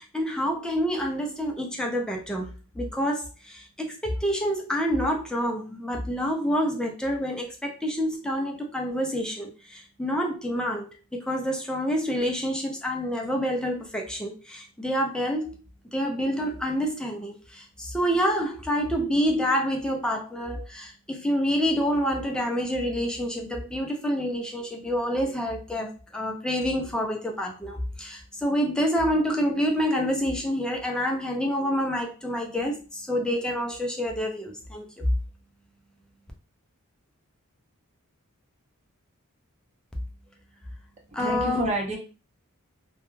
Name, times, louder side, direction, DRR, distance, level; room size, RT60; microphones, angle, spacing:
voice 1, 0.0-15.6 15.9-35.1 41.1-41.7, equal, 5° left, 0 dB, 0.4 m, -27 dB
voice 2, 41.1-42.0, right 1 dB, 30° right, 0 dB, 0.7 m, -28 dB
2.3 x 2.1 x 3.0 m, 0.33 s
head